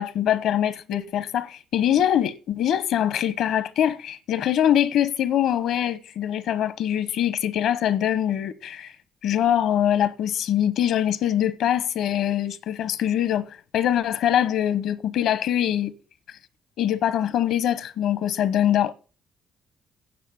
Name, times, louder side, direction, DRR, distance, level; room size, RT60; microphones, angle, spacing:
voice 1, 0.0-8.9 9.2-15.9 16.8-18.9, left 10 dB, 80° left, 1.0 m, -23 dB
9.3 x 7.1 x 8.6 m
cardioid pair, 90°, 0 cm